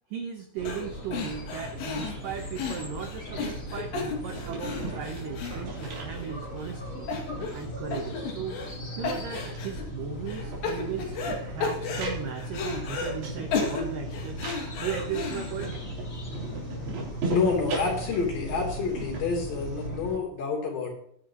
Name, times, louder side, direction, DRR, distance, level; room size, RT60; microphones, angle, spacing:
voice 1, 0.1-7.1 7.5-8.6 9.0-14.4 14.8-15.7, right 7 dB, 90° right, 5 dB, 1.9 m, -37 dB
sound 1, 0.6-20.2, equal, 20° left, 3.2 m, -38 dB
sound 2, 0.7-0.9 1.1-6.3 6.6-6.7 7.1-7.7 7.9-8.8 9.0-9.8 10.3-11.4 11.6-13.1 13.5-15.7, left 5 dB, 75° left, 4.3 m, -33 dB
sound 3, 4.2-6.7 7.1-8.9 9.2-19.9, right 3 dB, 60° right, 5.3 m, -39 dB
voice 2, 17.3-20.9, left 4 dB, 50° left, 0 dB, 4.6 m, -28 dB
20.5 x 9.8 x 3.0 m, 0.67 s
omnidirectional pair, 5.2 m